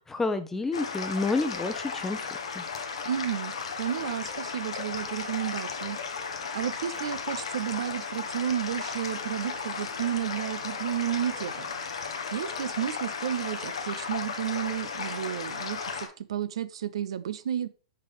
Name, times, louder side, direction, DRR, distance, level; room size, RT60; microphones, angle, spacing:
voice 1, 0.1-2.2 2.5-2.6, left 3 dB, 10° left, 9 dB, 0.7 m, -29 dB
sound 1, 0.7-16.1, left 5 dB, 80° left, 1.0 m, -35 dB
voice 2, 3.0-3.5 3.8-6.0 6.5-11.7 12.3-17.7, right 10 dB, 75° right, 15 dB, 0.4 m, -32 dB
5.7 x 5.1 x 3.3 m, 0.37 s
hypercardioid pair, 115°, 3 cm